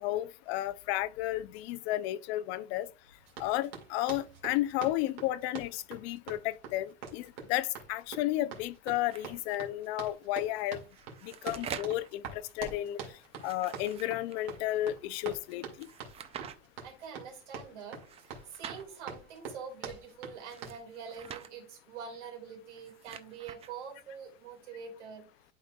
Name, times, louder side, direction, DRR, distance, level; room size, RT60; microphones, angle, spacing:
voice 1, 0.0-2.9 3.4-10.8 11.2-13.0 13.4-15.9, left 15 dB, 65° left, 0.6 m, -33 dB
Run, 3.3-20.8, right 5 dB, 50° right, 2.1 m, -45 dB
sound 1, 9.1-9.6 10.8-12.1 13.3-14.6 15.8-16.6 18.0-18.8 20.3-21.5 22.6-23.7, right 8 dB, 20° right, 0.3 m, -46 dB
voice 2, 16.8-18.0 18.3-25.3, right 6 dB, 85° right, 2.9 m, -45 dB
11.5 x 4.3 x 2.3 m
supercardioid pair, 140°, 35 cm